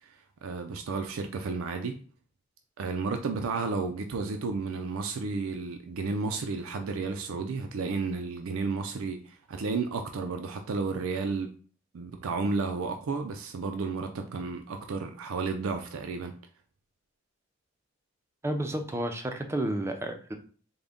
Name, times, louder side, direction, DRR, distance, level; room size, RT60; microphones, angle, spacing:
voice 1, 0.0-2.0 2.8-11.5 11.9-16.3, right 4 dB, 80° right, 0.4 m, -32 dB
voice 2, 18.4-20.3, right 1 dB, 15° right, 0.4 m, -31 dB
3.8 x 2.2 x 3.5 m
head